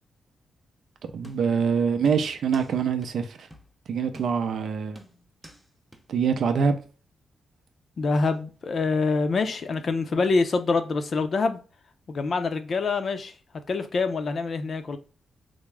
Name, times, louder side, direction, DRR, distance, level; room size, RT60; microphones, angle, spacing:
voice 1, 1.0-3.5 3.9-5.0 6.1-6.8, right 6 dB, 75° right, 0.5 m, -25 dB
sound 1, 1.2-1.7 2.1-2.7 3.0-3.1 3.5-3.7 4.1-4.6 5.0-5.6 5.9-6.0, right 1 dB, 5° right, 0.6 m, -48 dB
voice 2, 8.0-11.6 12.1-13.3 13.7-15.0, left 4 dB, 55° left, 0.5 m, -25 dB
3.5 x 2.0 x 3.2 m
cardioid pair, 85°, 0 cm